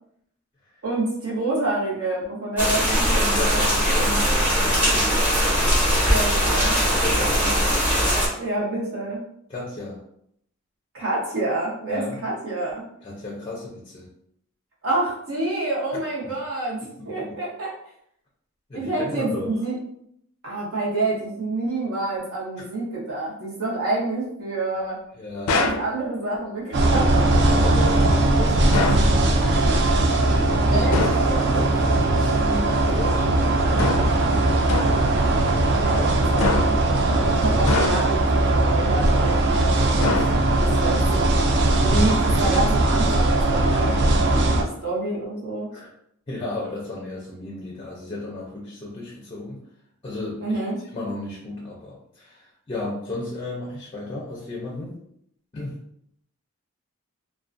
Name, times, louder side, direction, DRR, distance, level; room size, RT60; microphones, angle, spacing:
voice 1, 0.8-3.8 6.0-6.8 8.4-9.3 10.9-12.8 14.8-17.7 18.7-19.7 20.4-25.0 25.5-27.3 30.7-31.0 35.8-36.8 37.1-40.0 40.6-41.3 41.8-45.7 50.4-50.8, right 2 dB, 70° right, -5 dB, 0.8 m, -28 dB
sound 1, 2.6-8.3, equal, 10° right, 0.8 m, -20 dB
voice 2, 3.1-5.2 6.9-7.8 9.5-10.0 11.9-12.2 13.0-14.1 17.0-17.4 18.7-19.6 25.2-25.6 27.4-29.9 30.3-35.0 45.7-45.9 46.3-49.6 50.0-50.6 50.9-55.0 55.5-55.8, left 2 dB, 25° left, -3 dB, 0.4 m, -34 dB
sound 2, 25.5-25.9 28.7-29.1 30.9-31.3 33.8-34.2 34.7-35.1 36.4-36.9 37.7-38.3 40.0-40.7, left 3 dB, 85° left, 0.4 m, -25 dB
sound 3, 26.7-44.6, right 2 dB, 55° right, 0.3 m, -20 dB
2.4 x 2.1 x 2.4 m, 0.71 s
head